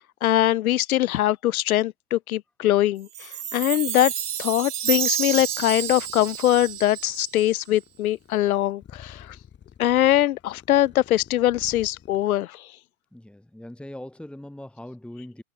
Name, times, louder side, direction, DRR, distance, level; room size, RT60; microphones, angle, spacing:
voice 1, 0.2-4.1 4.4-9.4 9.8-12.6, left 14 dB, 75° left, 0.5 m, -22 dB
Chime, 3.1-7.6, right 10 dB, 80° right, 0.8 m, -30 dB
sound 1, 5.2-12.3, left 8 dB, 25° left, 4.5 m, -51 dB
voice 2, 13.1-15.4, left 1 dB, ahead, 2.6 m, -40 dB
figure-of-eight pair, 95°, 44 cm